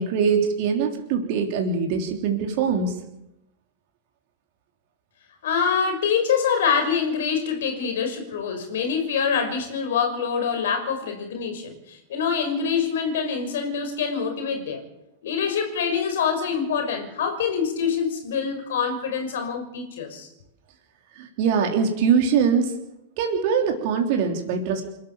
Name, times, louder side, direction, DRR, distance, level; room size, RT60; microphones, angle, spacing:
voice 1, 0.0-2.9 21.2-22.7 23.2-24.8, right 6 dB, 50° right, 3 dB, 3.3 m, -22 dB
voice 2, 5.4-14.8 15.2-20.3, left 6 dB, 60° left, 6 dB, 5.7 m, -25 dB
28.0 x 13.0 x 7.5 m, 0.88 s
figure-of-eight pair, 95°, 0 cm